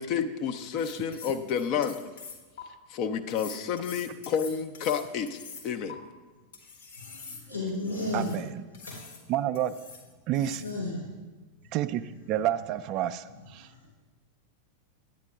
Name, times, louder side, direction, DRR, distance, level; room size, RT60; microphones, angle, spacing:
voice 1, 0.0-2.1 2.9-5.4 5.6-6.0, left 7 dB, 40° left, 8 dB, 0.4 m, -30 dB
sound 1, 0.6-2.6 3.3-5.9 6.5-8.4 8.7-9.2 9.5-10.1 10.3-10.8, left 5 dB, 60° left, 1.2 m, -45 dB
voice 2, 6.9-8.4 8.7-9.0 10.3-11.1 11.6-12.1 13.5-13.8, left 2 dB, 85° left, -7 dB, 2.5 m, -35 dB
voice 3, 8.1-8.5 9.3-9.7 10.3-10.6 11.7-13.7, right 11 dB, 40° right, 13 dB, 0.3 m, -29 dB
10.5 x 8.8 x 2.3 m, 1.2 s
figure-of-eight pair, 90°, 0 cm